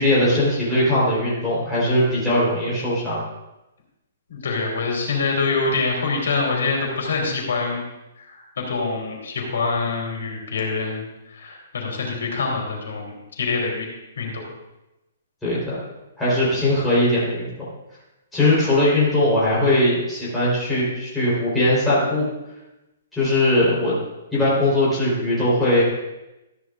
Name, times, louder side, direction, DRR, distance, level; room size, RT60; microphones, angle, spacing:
voice 1, 0.0-3.2 15.4-15.8 16.2-17.5 18.3-22.3 23.1-23.9 24.3-25.8, left 1 dB, 5° left, -10 dB, 3.9 m, -20 dB
voice 2, 4.3-7.8 8.2-11.0 11.3-13.9 14.2-14.4, left 4 dB, 75° left, 0 dB, 3.3 m, -25 dB
13.5 x 10.5 x 2.5 m, 0.97 s
hypercardioid pair, 170°, 0 cm